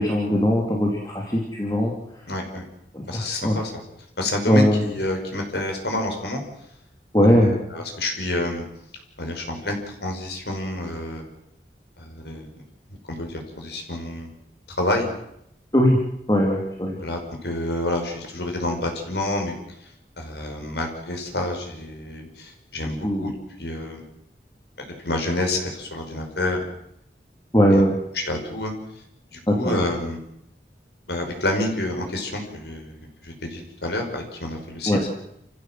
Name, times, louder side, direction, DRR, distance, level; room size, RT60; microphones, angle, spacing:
voice 1, 0.0-1.9 2.9-3.6 4.5-4.8 7.1-7.5 15.7-16.0 16.3-17.0 23.0-23.3 27.5-27.9 29.5-29.8 34.9-35.0, equal, 20° left, -1 dB, 2.9 m, -19 dB
voice 2, 2.3-2.6 3.1-3.8 4.2-6.4 7.3-8.6 9.2-11.3 12.0-12.5 13.2-14.3 14.7-15.1 17.0-19.5 20.2-24.0 24.8-26.6 27.7-27.8 28.1-28.7 29.3-30.2 31.1-33.0 33.2-35.0, left 1 dB, 75° left, 3 dB, 5.6 m, -28 dB
28.5 x 15.5 x 7.7 m, 0.78 s
head